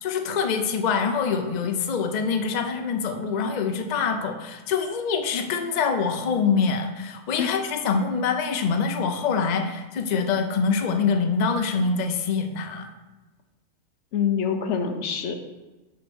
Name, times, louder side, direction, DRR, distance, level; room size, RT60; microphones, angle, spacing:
voice 1, 0.0-12.9, left 5 dB, 75° left, 6 dB, 0.3 m, -25 dB
voice 2, 14.1-15.3, left 7 dB, 60° left, 6 dB, 0.9 m, -25 dB
6.4 x 4.0 x 6.2 m, 1.2 s
omnidirectional pair, 1.6 m